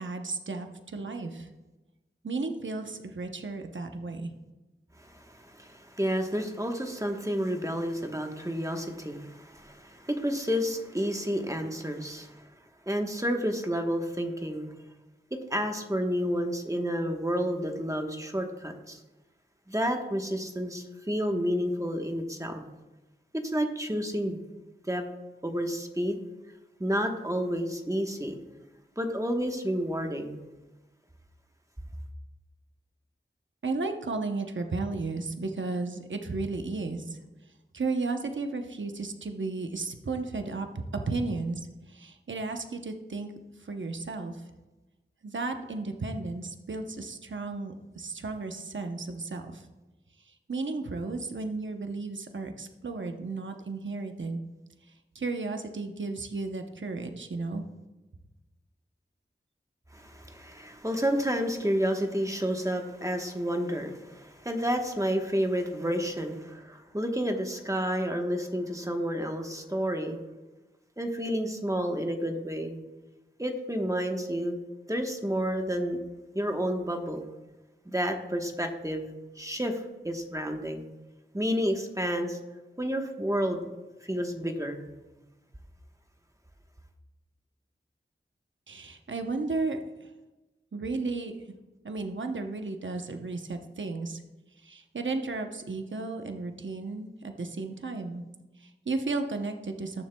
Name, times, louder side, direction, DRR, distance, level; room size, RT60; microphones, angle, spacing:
voice 1, 0.0-1.5 2.2-4.3 33.6-37.2 37.7-43.3 43.6-44.4 45.2-49.7 50.3-54.4 55.1-57.6 88.7-90.1 90.7-91.3 91.8-94.2 94.6-98.2 98.6-100.0, right 3 dB, 70° right, 5 dB, 0.8 m, -34 dB
voice 2, 5.0-12.4 12.9-14.7 15.3-19.0 19.7-22.6 23.3-24.4 24.9-25.0 25.4-26.2 26.8-28.3 29.0-30.5 59.9-70.2 71.0-72.8 73.4-74.6 74.9-76.0 76.3-77.3 77.8-79.1 79.3-80.8 81.3-82.4 82.8-83.7 84.0-84.9, equal, 15° right, 3 dB, 1.2 m, -30 dB
18.0 x 7.2 x 2.3 m, 1.1 s
wide cardioid pair, 40°, 20 cm